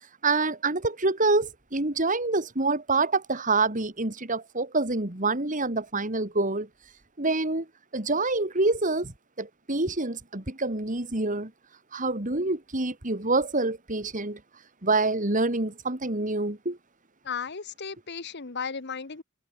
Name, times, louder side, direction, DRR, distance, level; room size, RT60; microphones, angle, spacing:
voice 1, 0.2-6.7 7.2-7.7 7.9-11.5 11.9-14.4 14.8-16.8, right 3 dB, 35° right, 2.5 m, -26 dB
voice 2, 17.2-19.2, left 6 dB, 55° left, 1.2 m, -35 dB
open air
head